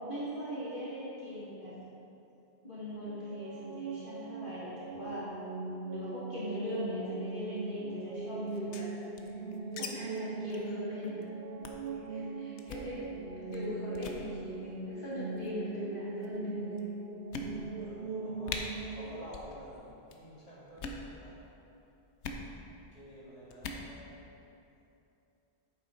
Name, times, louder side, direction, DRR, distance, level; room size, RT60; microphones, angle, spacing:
voice 1, 0.0-1.8 2.6-5.3 5.9-8.9 9.2-9.3 9.8-11.3 11.9-13.1 13.5-16.8, left 1 dB, 50° left, -10 dB, 1.9 m, -40 dB
sound 1, 3.1-19.3, right 3 dB, 60° right, 0.7 m, -40 dB
sound 2, 8.5-9.9 10.1-10.2 10.5-10.7 11.0-11.2 11.6-11.9 12.6-12.9 13.5-13.7 13.9-14.2 15.1-15.5 16.2-16.3 16.8-16.9 17.3-17.9 18.1-18.2 18.4-18.6 19.3-19.5 19.8-20.2 20.7-21.0 22.2-22.4 23.5-23.8, left 4 dB, 80° left, 1.0 m, -41 dB
voice 2, 12.6-13.4 17.8-21.4 22.9-24.3, equal, 30° left, -8 dB, 2.1 m, -51 dB
8.7 x 6.8 x 4.2 m, 2.8 s
omnidirectional pair, 1.1 m